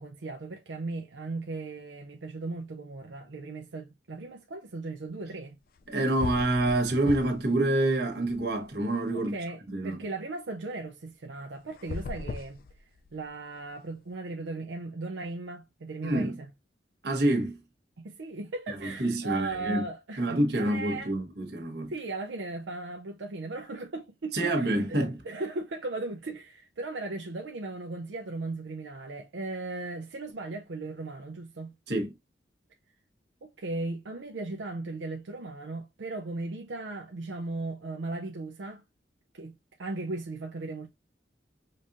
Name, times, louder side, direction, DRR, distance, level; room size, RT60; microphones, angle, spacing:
voice 1, 0.0-5.6 9.1-16.5 18.0-21.1 21.9-31.7 33.4-38.8 39.3-40.9, right 3 dB, 90° right, 0.6 m, -37 dB
sound 1, 5.8-5.9 6.2-7.5 7.8-8.9 11.7-13.3, left 4 dB, 50° left, 0.4 m, -38 dB
voice 2, 5.9-9.3 9.7-10.0 16.0-16.4 17.0-17.6 18.7-19.9 20.2-21.9 24.3-25.2 31.9-32.1, right 1 dB, 65° right, 1.2 m, -27 dB
5.2 x 2.6 x 2.5 m
head